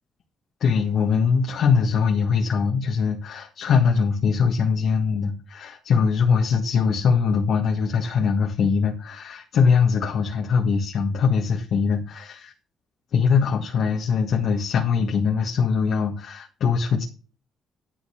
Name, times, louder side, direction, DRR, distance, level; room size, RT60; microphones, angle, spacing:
voice 1, 0.6-12.5 13.1-17.0, left 6 dB, 70° left, 0 dB, 1.8 m, -22 dB
11.5 x 4.0 x 6.5 m, 0.36 s
cardioid pair, 90°, 0 cm